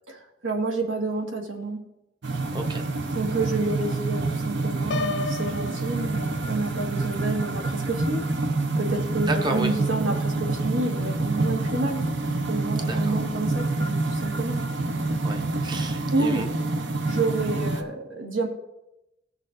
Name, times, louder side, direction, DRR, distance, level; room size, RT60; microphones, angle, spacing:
voice 1, 0.1-1.8 3.1-8.2 8.8-12.1 12.5-14.6 16.1-16.5 17.1-18.5, right 3 dB, 90° right, 1 dB, 1.7 m, -29 dB
sound 1, 2.2-17.8, right 2 dB, 70° right, 0.8 m, -27 dB
voice 2, 2.5-2.9 9.3-9.7 12.8-13.2 15.2-16.5, right 2 dB, 25° right, 4 dB, 0.7 m, -31 dB
Piano, 4.9-6.8, left 4 dB, 60° left, 0.3 m, -33 dB
18.5 x 6.5 x 2.6 m, 0.91 s
head